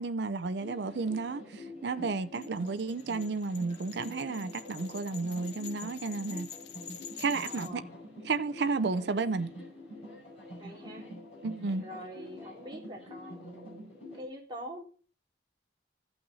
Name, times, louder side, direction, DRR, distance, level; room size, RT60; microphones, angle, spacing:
voice 1, 0.0-6.5 7.2-7.8 8.2-9.5 11.4-11.8, right 4 dB, 70° right, 0.5 m, -32 dB
sound 1, 0.6-14.2, left 1 dB, 35° left, 5.6 m, -47 dB
sound 2, 2.3-7.7, left 8 dB, 70° left, 1.0 m, -47 dB
voice 2, 7.4-7.9 8.9-9.5 10.6-11.1 11.8-14.8, equal, 25° right, 2.6 m, -45 dB
15.5 x 5.8 x 4.0 m
head